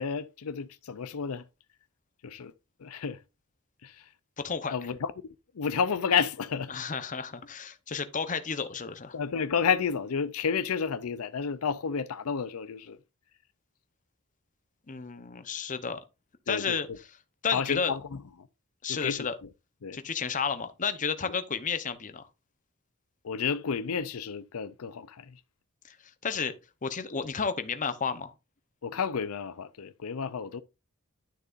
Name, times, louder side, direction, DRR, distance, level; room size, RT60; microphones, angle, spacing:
voice 1, 0.0-1.4 2.2-2.5 2.8-3.2 3.8-4.0 4.7-5.1 5.6-6.7 9.1-13.0 16.5-16.8 17.5-18.0 18.9-19.3 19.8-20.0 23.2-25.3 28.8-30.6, left 6 dB, 80° left, 0.5 m, -31 dB
voice 2, 4.4-4.8 6.7-9.2 14.9-16.0 16.5-16.9 17.4-17.9 18.8-19.3 19.9-22.3 25.9-26.0 26.2-26.5 26.8-28.3, left 6 dB, 35° left, 0.8 m, -32 dB
11.5 x 6.7 x 2.5 m
head